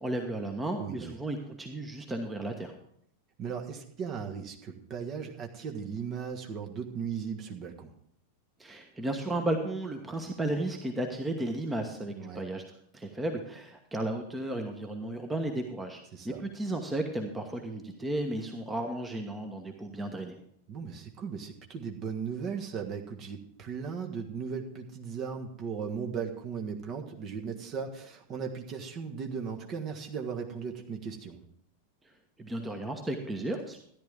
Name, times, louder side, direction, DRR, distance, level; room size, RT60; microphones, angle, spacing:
voice 1, 0.0-2.7 8.6-12.6 12.9-20.4 32.4-33.8, right 1 dB, 10° right, 4 dB, 1.2 m, -34 dB
voice 2, 0.8-1.2 3.4-7.9 12.1-12.4 16.1-16.4 20.7-31.4, right 6 dB, 35° right, 3 dB, 1.5 m, -37 dB
13.5 x 10.5 x 3.6 m, 0.67 s
figure-of-eight pair, 90°, 0 cm